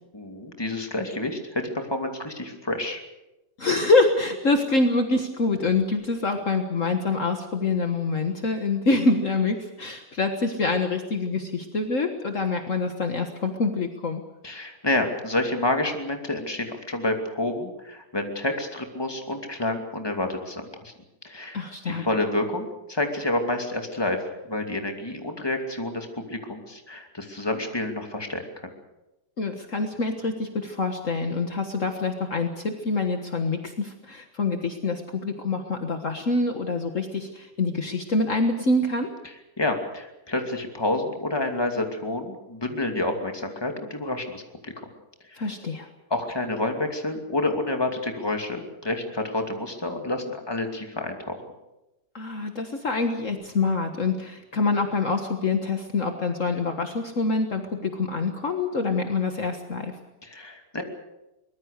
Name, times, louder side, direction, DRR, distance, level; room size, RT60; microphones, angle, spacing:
voice 1, 0.1-3.0 14.4-20.9 21.2-28.7 39.2-44.7 45.3-45.5 46.1-51.4 60.2-60.8, left 2 dB, 15° left, 4 dB, 2.6 m, -29 dB
voice 2, 3.6-14.2 21.5-22.0 29.4-39.1 45.4-45.9 52.1-59.9, left 3 dB, 50° left, 5 dB, 1.8 m, -25 dB
23.5 x 20.5 x 6.7 m, 0.97 s
omnidirectional pair, 1.8 m